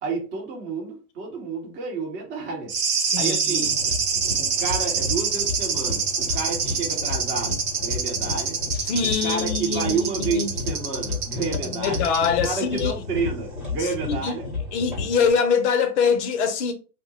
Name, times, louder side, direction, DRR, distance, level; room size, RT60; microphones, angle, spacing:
voice 1, 0.0-2.7 3.2-3.7 4.4-8.6 9.2-12.1 12.4-14.5, right 4 dB, 25° right, 0.9 m, -30 dB
sound 1, 2.7-12.5 12.8-12.9, right 6 dB, 60° right, 1.1 m, -26 dB
voice 2, 3.0-3.8 8.7-10.5 11.6-12.9 13.8-14.3 14.7-16.7, left 6 dB, 45° left, 0.6 m, -24 dB
sound 2, 3.6-15.3, left 3 dB, ahead, 0.5 m, -33 dB
2.8 x 2.1 x 4.0 m
hypercardioid pair, 135°, 47 cm